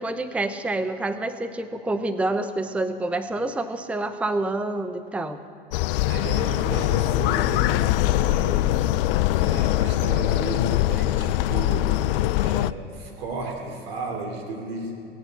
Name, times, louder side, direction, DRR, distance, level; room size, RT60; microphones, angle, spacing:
voice 1, 0.0-5.4, right 2 dB, 5° right, 10 dB, 0.6 m, -27 dB
sound 1, 5.7-12.7, left 15 dB, 70° left, 0.5 m, -22 dB
voice 2, 6.1-11.9 12.4-15.0, right 2 dB, 80° right, 1 dB, 3.5 m, -34 dB
18.0 x 9.0 x 7.2 m, 2.5 s
hypercardioid pair, 90°, 29 cm